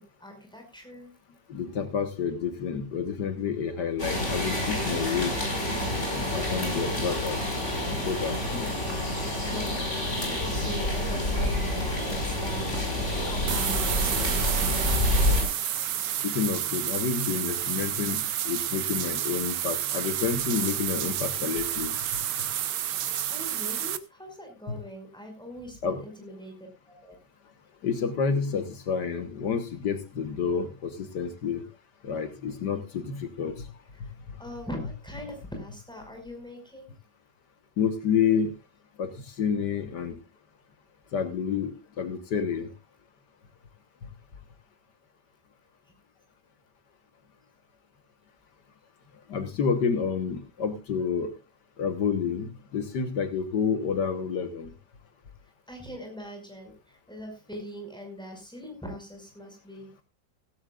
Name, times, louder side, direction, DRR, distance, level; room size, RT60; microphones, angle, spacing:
voice 1, 0.2-1.1 8.1-15.5 23.0-26.5 26.9-27.2 34.0-34.1 34.4-36.9 55.7-60.0, equal, ahead, 2 dB, 5.5 m, -41 dB
voice 2, 1.5-5.3 6.1-7.4 8.0-8.4 16.2-18.2 18.5-21.9 24.7-24.8 25.8-26.0 27.8-31.6 32.0-33.7 34.0-34.1 37.8-38.5 39.0-39.1 39.4-40.2 41.1-41.7 42.0-42.7 49.3-51.3 51.8-54.7, left 6 dB, 75° left, 8 dB, 1.9 m, -29 dB
sound 1, 4.0-15.4, left 1 dB, 40° left, 5.8 m, -28 dB
sound 2, 13.5-24.0, right 11 dB, 90° right, 1.5 m, -30 dB
16.0 x 15.5 x 2.4 m, 0.27 s
omnidirectional pair, 1.8 m